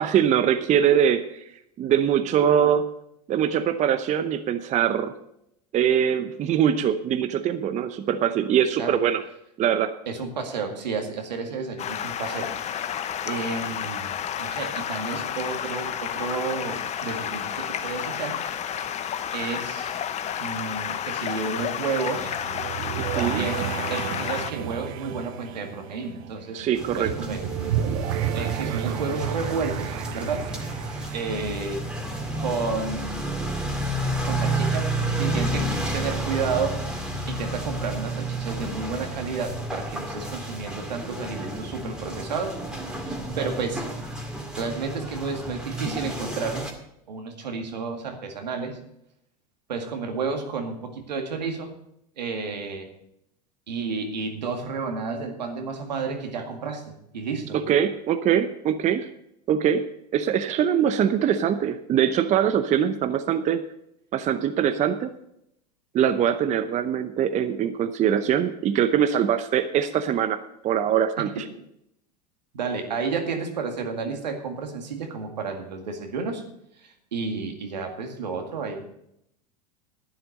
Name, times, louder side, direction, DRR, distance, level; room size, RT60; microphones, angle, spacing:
voice 1, 0.0-1.4 1.8-2.9 3.3-5.1 5.7-9.2 9.6-9.9 23.0-23.5 26.5-27.1 57.5-59.1 59.5-59.8 60.1-63.6 64.1-65.1 65.9-70.4 70.6-71.4, right 9 dB, 35° right, 10 dB, 0.8 m, -22 dB
voice 2, 10.1-12.5 13.2-14.1 14.4-18.4 19.3-20.0 20.4-22.4 23.2-23.6 23.9-26.7 27.0-27.4 28.3-30.5 31.1-31.8 32.4-33.5 34.2-34.9 35.2-35.7 35.9-36.8 37.3-42.6 43.0-43.9 44.5-46.7 47.1-48.8 49.7-51.7 52.2-52.9 53.7-56.8 57.1-57.6 72.5-76.4 76.8-78.9, right 4 dB, 85° right, 4 dB, 2.1 m, -31 dB
Stream, 11.8-24.5, left 9 dB, 30° left, 0.9 m, -31 dB
sound 1, 21.8-32.6, right 9 dB, 55° right, 1.1 m, -32 dB
sound 2, 26.7-46.7, right 1 dB, 5° right, 2.3 m, -31 dB
11.0 x 9.7 x 5.3 m, 0.77 s
hypercardioid pair, 90°, 21 cm